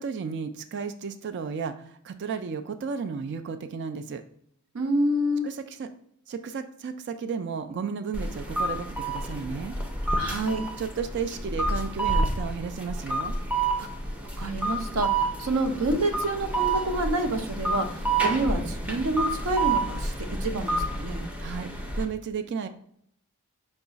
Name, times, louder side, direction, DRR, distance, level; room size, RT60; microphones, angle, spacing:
voice 1, 0.0-4.2 5.4-5.9 6.3-9.8 10.8-13.4 21.4-21.7 22.0-22.7, right 6 dB, 55° right, 9 dB, 0.3 m, -33 dB
voice 2, 4.7-5.5 10.1-10.6 13.8-13.9 14.4-20.1 20.4-21.2, right 2 dB, 90° right, 6 dB, 0.6 m, -28 dB
sound 1, 8.1-22.1, right 2 dB, 5° right, 0.6 m, -29 dB
5.3 x 2.4 x 3.9 m, 0.66 s
head